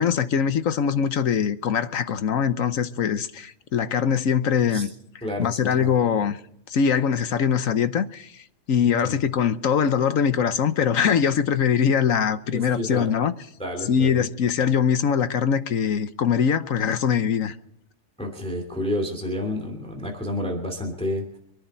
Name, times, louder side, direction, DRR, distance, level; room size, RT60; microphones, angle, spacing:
voice 1, 0.0-4.9 5.4-6.4 6.7-8.4 8.7-13.3 13.9-17.5, left 7 dB, 60° left, 1.2 m, -22 dB
voice 2, 5.2-5.9 8.8-9.2 12.5-13.1 13.6-14.3 18.2-21.4, left 1 dB, 5° left, 2.8 m, -30 dB
25.5 x 10.5 x 4.4 m
omnidirectional pair, 1.6 m